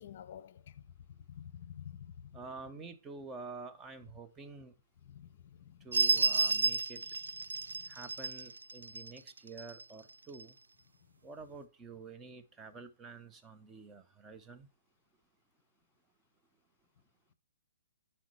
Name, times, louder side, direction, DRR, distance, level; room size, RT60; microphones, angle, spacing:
voice 1, 0.0-2.3 5.0-5.9 7.7-8.0, left 9 dB, 50° left, 0.5 m, -50 dB
voice 2, 2.3-4.7 5.8-7.3 7.9-10.6 11.2-14.7, right 4 dB, 15° right, 0.7 m, -48 dB
sound 1, 5.9-9.8 10.4-10.5, right 3 dB, 90° right, 0.4 m, -31 dB
11.5 x 4.3 x 3.1 m
hypercardioid pair, 140°, 0 cm